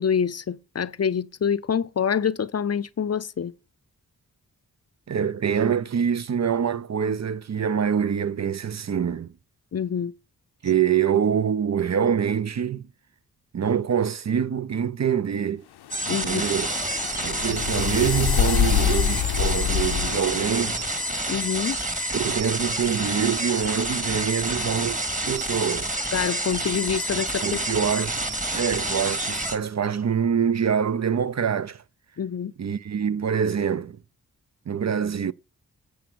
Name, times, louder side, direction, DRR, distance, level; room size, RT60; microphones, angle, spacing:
voice 1, 0.0-3.5 9.7-10.1 16.1-16.4 21.3-21.8 26.1-27.4 32.2-32.5, left 7 dB, 40° left, 0.6 m, -26 dB
voice 2, 5.1-9.3 10.6-12.9 13.5-15.6 16.1-16.7 17.2-20.8 22.1-25.0 25.2-25.9 27.4-28.2 28.5-31.8 32.6-34.0 34.7-35.3, right 7 dB, 45° right, 0.6 m, -25 dB
sound 1, 15.9-21.2, left 11 dB, 90° left, 0.6 m, -26 dB
sound 2, 15.9-29.6, right 1 dB, 20° right, 2.3 m, -28 dB
7.9 x 7.0 x 6.1 m
cardioid pair, 45°, 38 cm